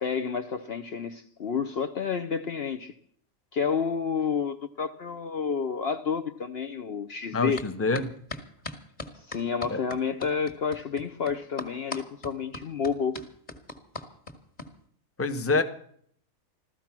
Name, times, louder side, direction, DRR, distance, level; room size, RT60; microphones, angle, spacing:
voice 1, 0.0-2.9 3.5-7.6 9.1-13.2, left 6 dB, 55° left, 8 dB, 0.9 m, -30 dB
voice 2, 7.3-8.1 9.7-9.8 15.2-15.6, left 3 dB, 10° left, 8 dB, 0.8 m, -26 dB
sound 1, 7.6-7.7 7.9-14.7, left 2 dB, 30° left, 1.9 m, -38 dB
15.0 x 13.5 x 5.9 m, 0.62 s
omnidirectional pair, 1.5 m